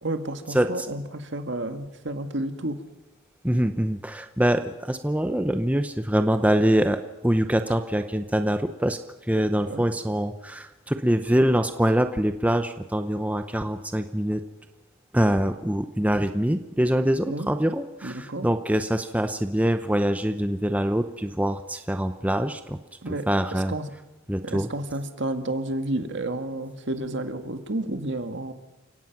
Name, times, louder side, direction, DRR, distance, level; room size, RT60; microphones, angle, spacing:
voice 1, 0.0-2.8 9.7-9.9 17.3-17.5 18.0-18.5 23.0-23.9 24.4-28.5, right 1 dB, 60° right, 8 dB, 1.8 m, -31 dB
voice 2, 0.5-0.9 3.4-9.0 9.3-14.4 15.1-22.8 23.3-23.7 24.3-24.7, right 1 dB, 5° right, 8 dB, 0.7 m, -24 dB
29.0 x 17.5 x 6.0 m, 1.0 s
head